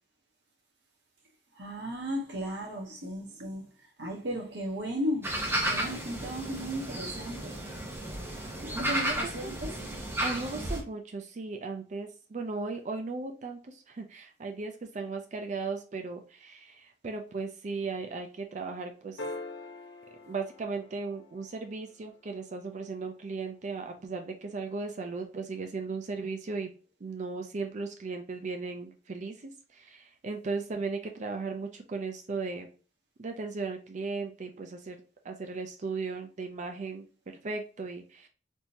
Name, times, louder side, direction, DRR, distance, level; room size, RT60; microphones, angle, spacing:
voice 1, 1.5-3.6 4.0-5.3 5.7-7.6 8.6-9.7, equal, 70° right, 1.0 m, -35 dB
sound 1, 5.2-10.8, right 1 dB, 15° right, 0.8 m, -33 dB
voice 2, 8.9-9.2 9.4-9.6 10.2-19.2 20.2-26.7 27.0-32.7 33.2-35.0 35.2-38.3, right 4 dB, 45° right, 0.4 m, -36 dB
sound 2, 19.2-21.7 23.9-24.0, left 2 dB, 70° left, 0.7 m, -43 dB
3.5 x 2.6 x 2.8 m
head